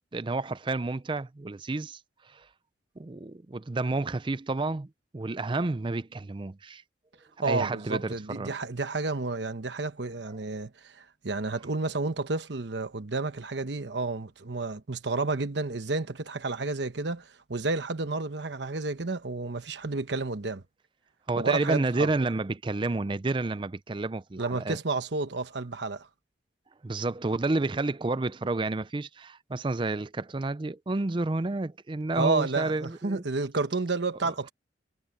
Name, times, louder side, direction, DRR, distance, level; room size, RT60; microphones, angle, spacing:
voice 1, 0.1-2.5 3.0-4.9 5.1-6.8 7.4-8.5 21.3-24.8 26.8-33.2 34.2-34.3, right 2 dB, 25° right, 0.5 m, -30 dB
voice 2, 7.4-20.6 21.4-22.1 24.4-26.1 32.1-34.5, right 3 dB, 75° right, 1.1 m, -31 dB
head